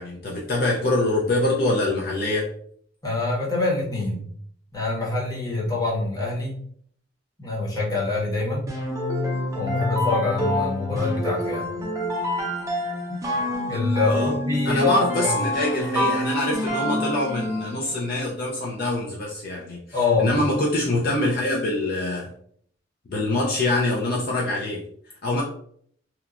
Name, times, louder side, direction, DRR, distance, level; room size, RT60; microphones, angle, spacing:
voice 1, 0.0-2.5 14.0-14.3 14.6-22.3 23.1-25.4, left 2 dB, 45° left, -3 dB, 0.4 m, -25 dB
voice 2, 3.0-4.3 4.7-6.6 7.4-8.7 9.5-11.7 13.7-15.3 19.9-20.3, left 3 dB, 20° left, -5 dB, 0.8 m, -25 dB
sound 1, 8.7-17.9, left 1 dB, 15° right, 0.5 m, -27 dB
2.9 x 2.1 x 2.4 m, 0.63 s
head